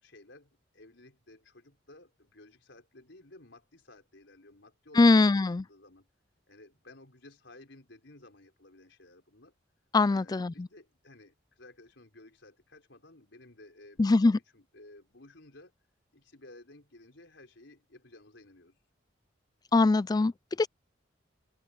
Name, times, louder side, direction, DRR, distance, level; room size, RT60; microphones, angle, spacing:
voice 1, 0.0-5.1 5.4-6.1 6.5-9.5 10.1-15.7 16.1-18.8, left 2 dB, 70° left, 5.4 m, -55 dB
voice 2, 4.9-5.6 9.9-10.7 14.0-14.4 19.7-20.7, left 3 dB, 20° left, 0.3 m, -22 dB
open air
head